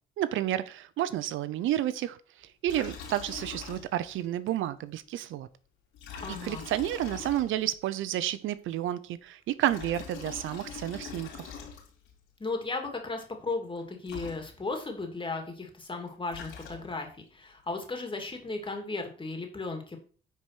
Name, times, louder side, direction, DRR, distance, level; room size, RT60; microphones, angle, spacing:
voice 1, 0.2-5.5 6.4-11.5, right 12 dB, 80° right, 0.7 m, -31 dB
Liquid, 2.7-4.2 4.5-4.6 5.9-7.8 9.5-12.1 13.8-13.9 14.0-14.9 16.0-17.2, left 6 dB, 90° left, 4.1 m, -43 dB
voice 2, 6.2-6.6 12.4-20.0, left 3 dB, 25° left, 2.8 m, -35 dB
10.0 x 4.8 x 6.1 m
cardioid pair, 90°, 20 cm